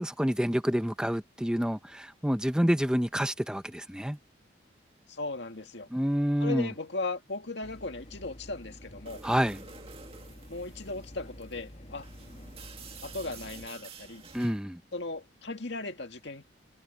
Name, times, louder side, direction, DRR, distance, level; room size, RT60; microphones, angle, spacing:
voice 1, 0.0-4.2 5.9-6.7 9.2-9.6 14.3-14.8, equal, 5° right, 0.7 m, -28 dB
voice 2, 5.1-5.9 6.4-9.2 10.5-12.1 13.0-14.3 14.9-16.4, left 3 dB, 65° left, 2.0 m, -37 dB
sound 1, 7.6-13.7, equal, 35° left, 2.3 m, -49 dB
sound 2, 9.1-14.6, right 5 dB, 30° right, 2.1 m, -50 dB
head